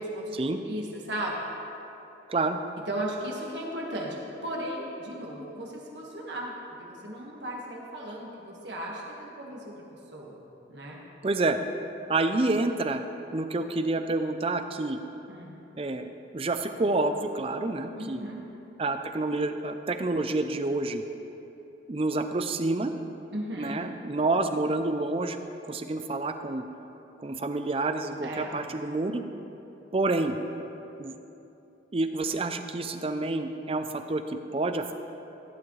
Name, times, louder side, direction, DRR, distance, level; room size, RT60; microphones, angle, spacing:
voice 1, 0.0-1.4 2.9-6.5 6.8-9.8 10.1-10.4 10.7-11.0 15.3-15.5 18.0-18.4 23.3-23.8 28.2-28.6, right 1 dB, 65° right, -3 dB, 1.7 m, -36 dB
voice 2, 11.2-11.6 12.1-13.0 13.3-15.0 15.8-16.1 16.3-18.3 18.8-21.0 21.9-22.9 23.6-25.4 25.6-26.6 27.2-29.2 29.9-30.4 31.0-31.1 31.9-34.9, right 2 dB, 30° right, 8 dB, 0.5 m, -28 dB
16.0 x 9.9 x 3.2 m, 3.0 s
head